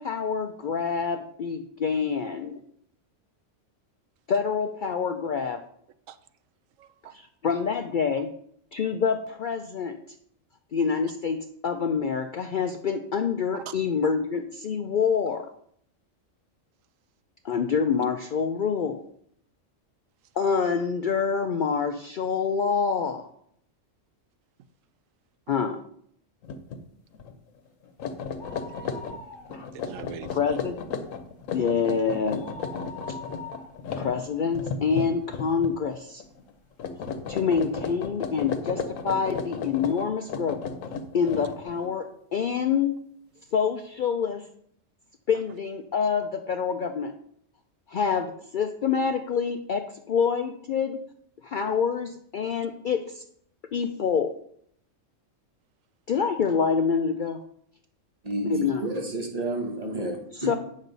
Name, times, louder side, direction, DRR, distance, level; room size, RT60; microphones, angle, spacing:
voice 1, 0.0-2.6 4.3-5.6 7.1-8.2 8.7-10.0 10.7-11.4 11.6-15.5 17.4-19.0 20.4-23.3 25.5-25.8 29.5-29.7 30.3-30.8 31.5-32.4 34.0-36.2 37.3-40.6 41.1-42.1 42.3-42.9 43.5-44.5 45.3-47.1 47.9-51.0 51.4-53.2 53.7-54.3 56.1-57.4 58.5-58.8 60.4-60.6, left 6 dB, 65° left, 0.5 m, -26 dB
voice 2, 6.8-7.2 13.5-13.7 28.7-29.3 29.7-30.6, right 9 dB, 85° right, 1.0 m, -42 dB
sound 1, 26.4-26.8 27.1-27.3 27.8-35.9 36.2-36.5 36.8-41.9, left 5 dB, 90° left, 1.2 m, -34 dB
sound 2, 28.4-29.9 30.2-30.3 30.8-35.2 35.7-35.8 36.6-36.7 36.9-37.0, left 3 dB, 45° left, 1.6 m, -44 dB
voice 3, 58.2-60.6, right 1 dB, 30° right, 1.2 m, -30 dB
9.0 x 6.3 x 4.0 m
omnidirectional pair, 1.3 m